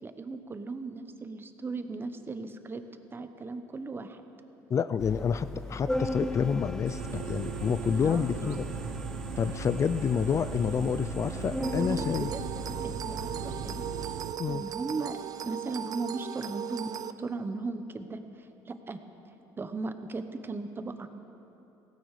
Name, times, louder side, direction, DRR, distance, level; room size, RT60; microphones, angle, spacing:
voice 1, 0.0-2.8 3.1-4.2 8.0-8.6 11.6-12.5 12.8-13.8 14.5-15.2 15.4-16.9 17.2-19.0 19.6-21.1, right 3 dB, 25° right, 9 dB, 1.1 m, -37 dB
voice 2, 4.7-8.6 9.4-12.3 14.4-14.6, left 7 dB, 35° left, 13 dB, 0.5 m, -28 dB
Organ, 5.0-14.1, left 2 dB, 5° left, 0.9 m, -37 dB
sound 1, 6.9-14.3, right 12 dB, 80° right, 0.7 m, -39 dB
sound 2, 11.6-17.1, right 9 dB, 45° right, 0.6 m, -38 dB
17.5 x 16.0 x 5.0 m, 3.0 s
cardioid pair, 100°, 9 cm